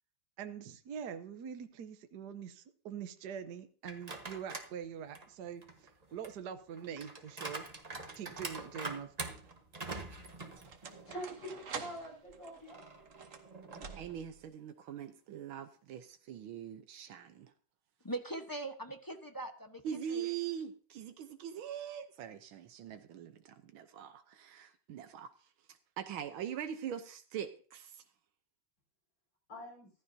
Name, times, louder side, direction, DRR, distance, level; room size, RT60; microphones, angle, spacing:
voice 1, 0.4-7.6 8.1-9.1, right 8 dB, 60° right, 8 dB, 1.4 m, -44 dB
sound 1, 3.8-4.7 5.2-11.2 11.6-11.7 12.7-14.2, right 3 dB, 25° right, 1.1 m, -45 dB
sound 2, 7.6-8.1 9.0-14.5, right 5 dB, 45° right, 1.4 m, -49 dB
voice 2, 11.0-12.8 29.5-29.9, equal, 65° left, -4 dB, 6.2 m, -45 dB
voice 3, 13.7-17.5 19.8-25.3 26.0-28.0, right 9 dB, 85° right, 8 dB, 1.7 m, -42 dB
voice 4, 18.0-20.3, right 2 dB, 15° left, 5 dB, 0.7 m, -41 dB
15.0 x 14.5 x 2.7 m, 0.42 s
omnidirectional pair, 2.2 m